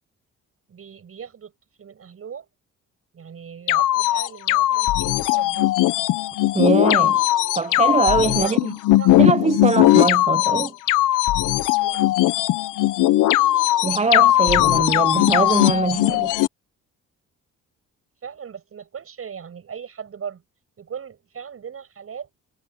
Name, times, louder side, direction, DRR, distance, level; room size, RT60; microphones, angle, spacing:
voice 1, 0.7-1.5 1.8-2.5 3.1-5.7 8.3-8.7 9.0-9.3 11.8-12.5 18.2-20.4 20.8-22.3, right 7 dB, 50° right, 6.8 m, -38 dB
sound 1, 3.7-16.5, left 15 dB, 90° left, 1.0 m, -19 dB
voice 2, 6.5-7.2 7.5-8.7 9.2-10.7 13.8-16.3, right 4 dB, 20° right, 0.6 m, -22 dB
cardioid pair, 90°, 30 cm